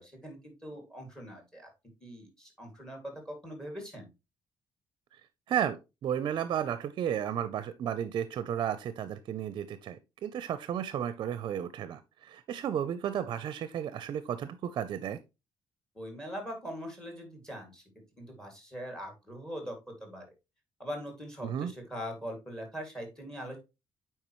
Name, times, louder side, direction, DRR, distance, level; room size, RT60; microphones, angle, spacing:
voice 1, 0.0-1.7 2.0-4.1 15.9-17.8 18.2-20.2 20.8-23.6, equal, 10° left, 4 dB, 2.2 m, -42 dB
voice 2, 5.5-15.2 21.4-21.7, right 9 dB, 55° right, 13 dB, 0.5 m, -33 dB
8.8 x 4.6 x 3.0 m, 0.25 s
cardioid pair, 150°, 8 cm